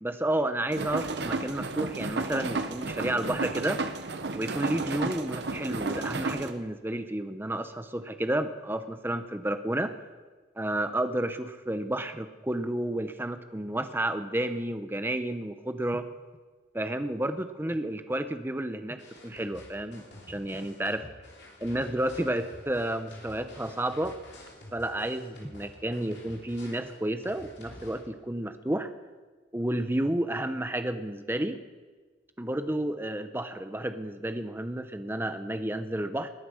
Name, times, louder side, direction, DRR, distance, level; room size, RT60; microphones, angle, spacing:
voice 1, 0.0-3.8 4.3-9.9 10.6-16.1 16.7-19.0 19.2-21.1 21.6-24.2 24.7-28.9 29.5-31.6 32.4-36.3, right 1 dB, 10° right, 9 dB, 0.7 m, -31 dB
sound 1, 0.7-6.5, right 3 dB, 60° right, 0.9 m, -32 dB
sound 2, 19.0-28.0, left 1 dB, 60° left, 3.4 m, -49 dB
20.0 x 9.3 x 6.4 m, 1.4 s
head